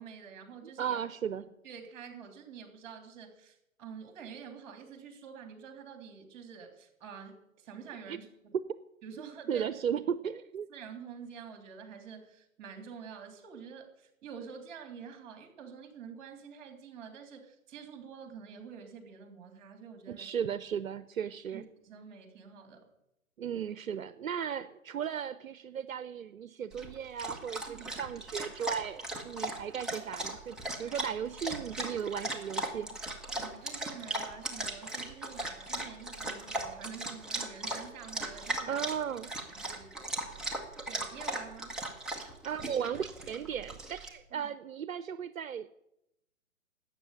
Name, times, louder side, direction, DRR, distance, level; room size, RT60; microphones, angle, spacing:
voice 1, 0.0-1.0 1.6-8.5 9.0-9.7 10.7-20.3 21.5-22.9 27.7-28.0 33.4-38.9 39.5-40.1 40.9-41.8 44.3-44.5, right 6 dB, 35° right, 5 dB, 3.2 m, -48 dB
voice 2, 0.8-1.5 8.1-8.2 9.5-10.7 20.1-21.6 23.4-32.9 38.7-39.3 42.4-45.7, right 8 dB, 75° right, 13 dB, 0.8 m, -36 dB
Dog, 26.7-44.1, right 1 dB, ahead, 0.8 m, -38 dB
12.5 x 8.3 x 9.8 m, 0.85 s
hypercardioid pair, 140°, 41 cm